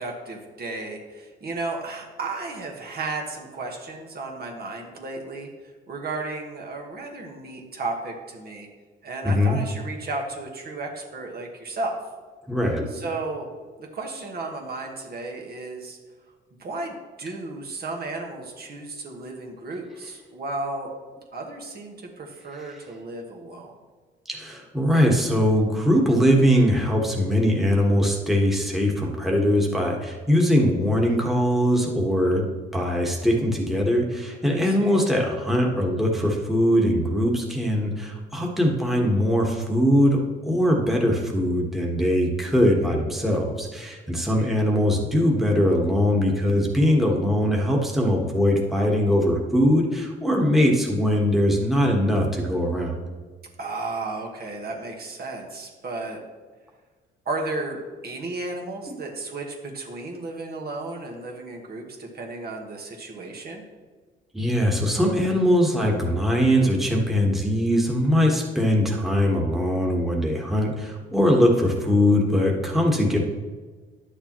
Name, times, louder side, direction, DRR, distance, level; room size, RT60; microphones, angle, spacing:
voice 1, 0.0-5.5 5.9-8.7 9.0-12.0 12.9-13.5 13.8-16.0 16.6-20.9 21.3-23.7 34.4-35.0 44.1-44.5 53.6-56.2 57.2-57.8 58.0-63.6, right 3 dB, 50° right, 0 dB, 1.5 m, -34 dB
voice 2, 9.2-9.6 12.5-13.0 24.3-32.4 32.7-52.9 58.9-59.0 64.3-73.2, equal, ahead, -1 dB, 1.4 m, -21 dB
10.0 x 6.6 x 3.1 m, 1.4 s
cardioid pair, 90°, 20 cm